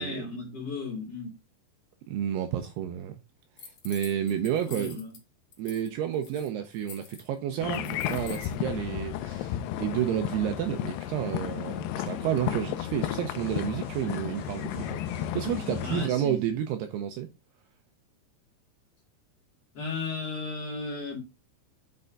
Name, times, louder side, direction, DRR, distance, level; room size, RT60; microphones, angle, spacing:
voice 1, 0.0-1.3 4.5-5.1 15.8-16.4 19.7-21.2, left 4 dB, 40° left, 3.3 m, -35 dB
voice 2, 2.1-3.2 3.9-5.0 5.6-17.3, right 10 dB, 80° right, 2.4 m, -31 dB
sound 1, 3.6-5.2 5.5-5.9 6.1-8.5, left 6 dB, 55° left, 1.9 m, -47 dB
sound 2, 7.6-16.1, left 11 dB, 85° left, 2.5 m, -33 dB
sound 3, 13.3-16.1, right 2 dB, 10° left, 3.7 m, -47 dB
8.1 x 5.5 x 3.7 m
omnidirectional pair, 5.3 m